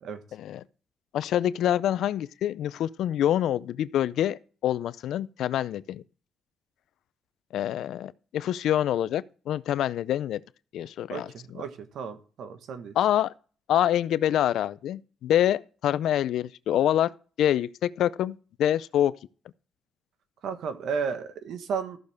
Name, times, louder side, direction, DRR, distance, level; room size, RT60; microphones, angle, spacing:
voice 1, 0.3-0.6 1.1-6.0 7.5-10.4 10.7-11.6 13.0-13.3 13.7-17.1 17.4-19.1, left 11 dB, 75° left, 0.4 m, -26 dB
voice 2, 11.1-12.9 20.4-22.0, right 6 dB, 70° right, 1.3 m, -33 dB
14.0 x 6.6 x 3.5 m
cardioid pair, 90°, 0 cm